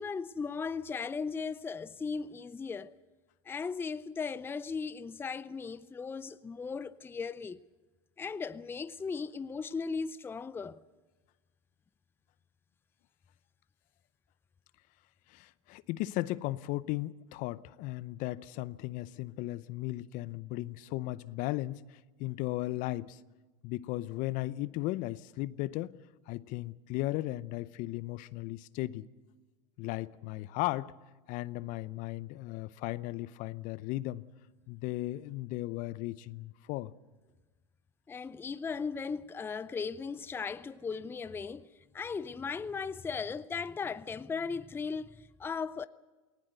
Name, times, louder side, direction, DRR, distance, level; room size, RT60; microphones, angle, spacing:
voice 1, 0.0-2.9 3.4-7.6 8.2-10.8 38.1-45.9, left 5 dB, 15° left, 0.5 m, -37 dB
voice 2, 15.3-23.2 23.6-26.0 26.3-29.1 29.8-30.9 31.3-34.3 34.7-36.9, left 17 dB, 50° left, 0.7 m, -36 dB
19.5 x 19.0 x 8.0 m
hypercardioid pair, 100°, 17 cm